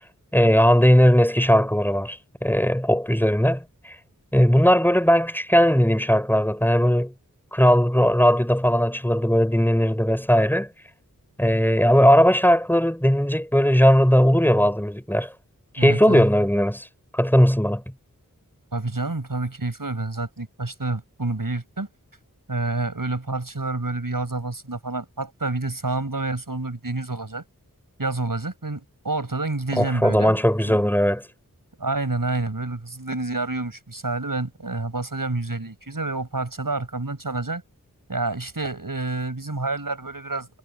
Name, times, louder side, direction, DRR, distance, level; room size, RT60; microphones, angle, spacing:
voice 1, 0.3-3.9 4.3-7.1 7.5-10.7 11.4-15.3 15.7-16.8 17.1-17.8 29.8-31.2, equal, 5° left, 4.5 m, -18 dB
voice 2, 15.8-16.3 18.7-21.9 22.5-27.4 28.0-30.8 31.8-37.6 38.1-40.5, right 2 dB, 75° right, 7.5 m, -28 dB
wide cardioid pair, 45°, 34 cm